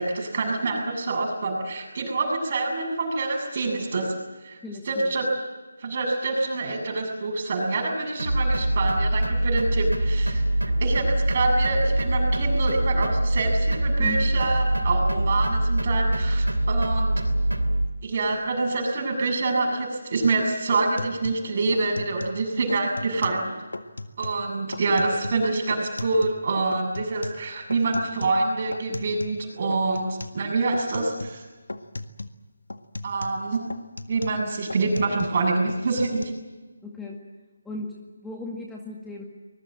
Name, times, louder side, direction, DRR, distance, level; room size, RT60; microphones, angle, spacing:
voice 1, 0.0-4.1 4.4-4.6 4.9-5.3 5.8-10.4 10.8-17.2 18.0-23.5 24.2-31.4 33.0-33.6 34.1-36.3, right 3 dB, 40° right, 2 dB, 7.4 m, -26 dB
voice 2, 4.6-5.1 14.0-14.3 36.8-37.2 37.6-39.2, left 1 dB, 5° left, -1 dB, 2.0 m, -36 dB
sound 1, 8.2-17.9, right 1 dB, 85° right, 3.1 m, -24 dB
sound 2, 20.2-20.4 20.7-22.4 22.7-23.5 23.7-24.4 24.7-26.5 26.7-29.4 29.7-30.4 30.7-31.4 31.7-32.4 32.7-35.4 35.7-36.2, left 2 dB, 70° left, 1.8 m, -37 dB
24.5 x 22.0 x 7.7 m, 1.2 s
figure-of-eight pair, 155°, 0 cm